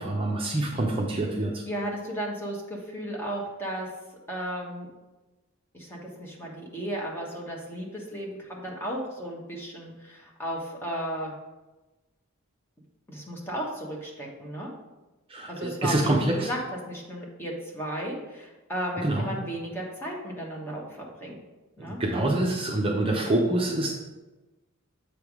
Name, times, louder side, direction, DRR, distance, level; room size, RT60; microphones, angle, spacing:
voice 1, 0.0-1.5 15.3-16.5 19.0-19.3 21.8-23.9, right 1 dB, 25° right, -1 dB, 0.7 m, -26 dB
voice 2, 1.7-3.9 4.3-4.9 5.7-11.3 13.1-14.7 15.5-16.6 16.9-20.8 21.2-21.4 21.8-22.0, equal, 10° left, -3 dB, 1.2 m, -34 dB
7.7 x 3.5 x 4.8 m, 1.1 s
head